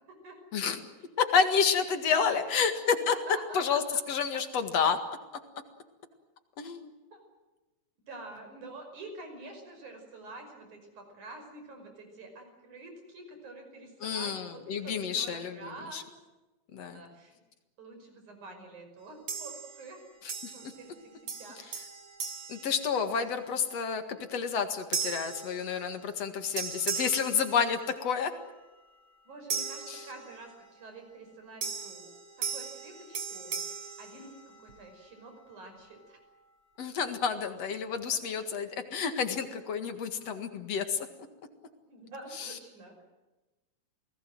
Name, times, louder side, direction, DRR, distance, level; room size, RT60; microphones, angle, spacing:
voice 1, 0.1-0.4 2.1-2.4 3.1-3.8 7.1-7.2 8.1-16.0 16.9-17.4 17.8-20.0 20.5-21.1 21.4-21.6 29.3-32.1 32.4-33.6 34.0-36.2 38.3-38.4 41.9-42.9, right 2 dB, 80° right, 5 dB, 7.2 m, -47 dB
voice 2, 1.2-3.2 3.5-5.0 6.6-6.9 14.0-16.0 16.7-17.0 20.4-20.7 22.5-24.0 24.3-28.3 29.9-30.0 36.8-41.1 42.4-42.5, left 6 dB, 60° left, 8 dB, 2.9 m, -29 dB
sound 1, 19.3-19.9 20.3-21.0 21.3-23.4 23.9-24.2 24.9-26.3 26.6-28.2 29.5-30.7 31.6-34.9, right 6 dB, 60° right, 4.0 m, -38 dB
29.0 x 19.0 x 7.8 m, 1.1 s
omnidirectional pair, 3.4 m